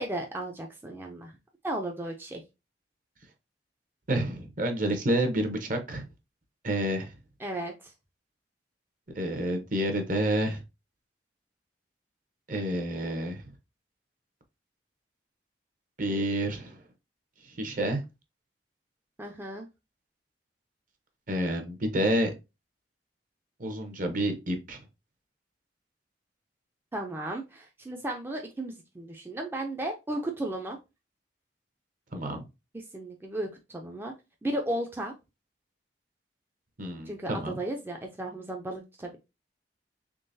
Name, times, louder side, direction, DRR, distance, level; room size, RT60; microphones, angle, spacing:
voice 1, 0.0-1.3 1.6-2.4 7.4-7.9 19.2-19.7 26.9-30.8 32.7-34.1 34.4-35.1 37.1-39.2, right 1 dB, 15° right, 2 dB, 0.4 m, -35 dB
voice 2, 4.1-6.1 6.6-7.1 9.2-10.6 12.5-13.4 16.0-16.8 17.6-18.0 21.3-22.3 23.6-24.8 32.1-32.4 36.8-37.6, right 1 dB, 50° right, 5 dB, 0.8 m, -29 dB
3.7 x 3.3 x 2.6 m, 0.26 s
head